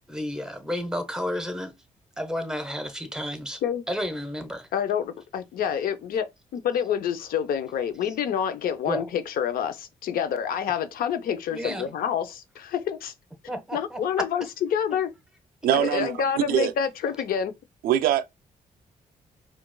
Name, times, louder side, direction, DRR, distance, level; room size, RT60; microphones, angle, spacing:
voice 1, 0.1-1.7 2.2-3.6 3.9-4.7 8.9-9.0 11.5-11.9 13.5-14.0, equal, 5° right, 1.0 m, -31 dB
voice 2, 4.7-13.1 13.7-15.1 15.7-17.5, left 8 dB, 80° left, 0.6 m, -28 dB
voice 3, 15.6-16.7 17.8-18.3, right 11 dB, 85° right, 0.4 m, -23 dB
4.5 x 2.4 x 2.2 m
cardioid pair, 70°, 15 cm